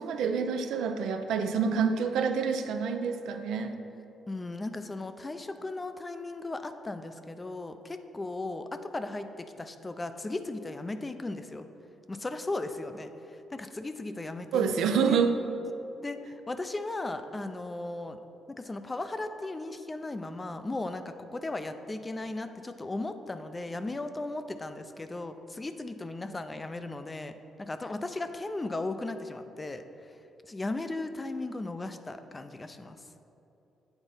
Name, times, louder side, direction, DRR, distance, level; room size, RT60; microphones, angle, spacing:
voice 1, 0.0-3.7 14.5-15.3, right 6 dB, 80° right, 6 dB, 0.5 m, -27 dB
voice 2, 4.3-11.7 12.1-14.7 15.1-15.2 16.0-18.2 18.5-29.8 30.5-33.0, left 2 dB, 20° left, 9 dB, 0.4 m, -36 dB
8.1 x 4.0 x 5.5 m, 2.9 s
cardioid pair, 90°, 0 cm